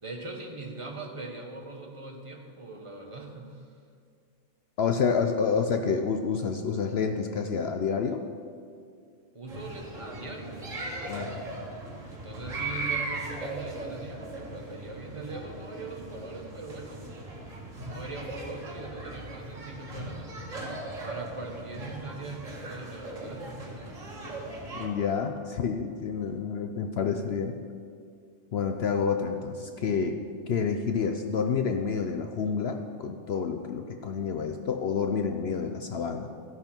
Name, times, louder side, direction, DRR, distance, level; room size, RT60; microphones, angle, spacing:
voice 1, 0.0-3.8 9.3-11.4 12.1-17.1 17.8-20.7 21.0-23.7, right 3 dB, 25° right, 1 dB, 1.4 m, -41 dB
voice 2, 4.8-8.2 11.1-11.2 24.7-27.6 28.5-30.2 30.5-36.3, left 6 dB, 60° left, 6 dB, 0.8 m, -28 dB
sound 1, 9.5-24.9, right 2 dB, 80° right, 2.2 m, -38 dB
14.0 x 11.0 x 4.4 m, 2.2 s
omnidirectional pair, 1.3 m